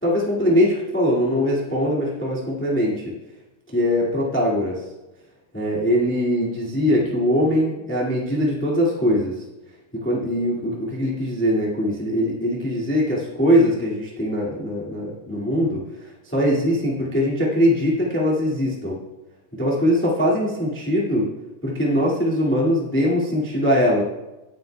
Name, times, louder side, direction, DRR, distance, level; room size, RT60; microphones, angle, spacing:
voice 1, 0.0-3.1 3.7-4.8 5.5-9.3 9.9-19.0 19.6-21.3 21.6-24.0, equal, 10° left, -4 dB, 0.8 m, -21 dB
17.5 x 9.5 x 2.3 m, 1.1 s
omnidirectional pair, 3.9 m